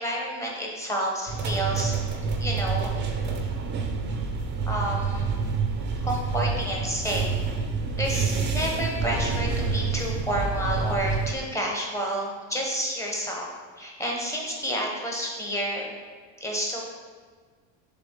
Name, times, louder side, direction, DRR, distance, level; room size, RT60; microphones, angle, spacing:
voice 1, 0.0-2.0 2.4-2.9 4.7-5.3 6.0-7.3 8.0-13.4 13.8-16.0 16.4-16.8, equal, 5° left, -1 dB, 0.8 m, -29 dB
sound 1, 1.3-11.3, right 4 dB, 25° right, 0.4 m, -28 dB
6.8 x 3.8 x 3.6 m, 1.5 s
cardioid pair, 160°, 42 cm